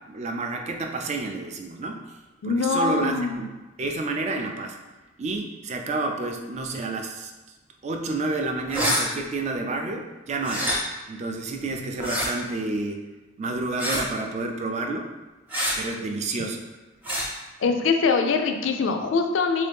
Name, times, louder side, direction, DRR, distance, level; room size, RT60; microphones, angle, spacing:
voice 1, 0.1-2.0 2.4-3.5 3.8-4.8 5.2-7.3 7.8-10.7 11.1-13.0 13.4-15.1 15.7-16.6, right 3 dB, 35° right, 3 dB, 0.3 m, -29 dB
voice 2, 2.4-3.5 17.6-19.7, left 4 dB, 65° left, 5 dB, 0.4 m, -23 dB
sound 1, 8.7-9.0 10.4-10.8 12.0-12.3 13.8-14.1 15.5-15.7 17.0-17.3, equal, 10° right, 0.7 m, -25 dB
3.6 x 2.7 x 3.4 m, 1.2 s
head